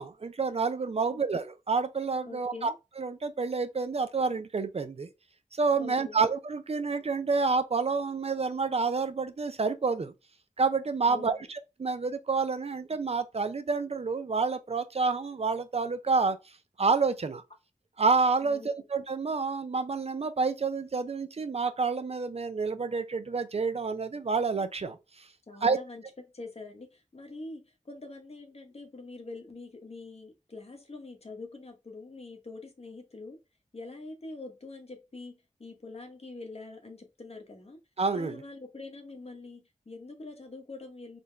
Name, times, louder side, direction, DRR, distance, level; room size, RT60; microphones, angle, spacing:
voice 1, 0.0-5.1 5.6-10.1 10.6-16.4 16.8-17.4 18.0-25.3 25.6-25.8 38.0-38.4, right 4 dB, 50° right, 0.4 m, -29 dB
voice 2, 2.2-2.7 5.8-6.2 11.1-11.3 18.4-18.7 25.5-26.0 26.3-33.4 33.7-35.3 35.6-37.8 38.1-41.2, left 3 dB, 50° left, 1.0 m, -44 dB
3.9 x 2.2 x 3.2 m
wide cardioid pair, 70°, 14 cm